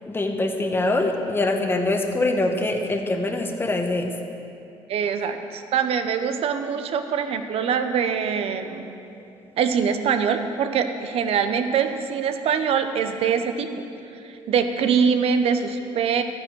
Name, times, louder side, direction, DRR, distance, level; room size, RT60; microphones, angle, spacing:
voice 1, 0.1-4.1, left 2 dB, 20° left, 3 dB, 1.2 m, -24 dB
voice 2, 4.9-8.9 9.6-13.8 14.2-16.2, right 6 dB, 65° right, 8 dB, 1.0 m, -23 dB
13.0 x 9.4 x 6.4 m, 2.7 s
cardioid pair, 85°, 11 cm